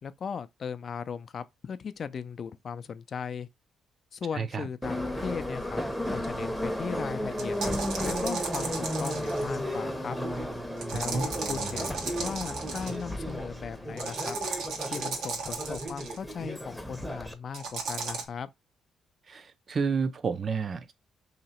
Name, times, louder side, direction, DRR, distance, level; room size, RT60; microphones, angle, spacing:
voice 1, 0.0-3.5 4.1-5.8 6.1-7.6 8.0-10.2 10.9-14.4 14.9-18.5, left 6 dB, 50° left, 0.4 m, -37 dB
voice 2, 4.3-4.7 11.1-11.2 19.3-20.9, right 5 dB, 45° right, 0.5 m, -30 dB
Subway metro underground, 4.8-17.3, equal, ahead, 0.7 m, -34 dB
sound 1, 7.4-9.5 10.8-13.0 14.0-16.2 17.5-18.2, right 4 dB, 85° right, 1.0 m, -35 dB
2.9 x 2.8 x 4.2 m
cardioid pair, 90°, 0 cm